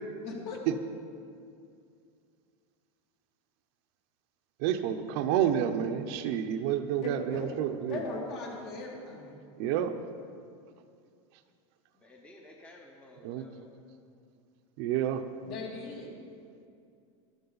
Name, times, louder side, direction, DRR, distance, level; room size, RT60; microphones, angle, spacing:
voice 1, 0.2-0.6 7.0-7.5 7.9-9.4 15.4-16.1, left 3 dB, 55° left, -2 dB, 2.9 m, -38 dB
voice 2, 4.6-8.0 9.6-9.9 13.2-13.5 14.8-15.2, right 10 dB, 50° right, 7 dB, 0.7 m, -29 dB
voice 3, 12.0-13.7 16.5-16.7, left 1 dB, 5° left, 0 dB, 0.8 m, -54 dB
12.5 x 12.5 x 4.0 m, 2.4 s
supercardioid pair, 150°, 16 cm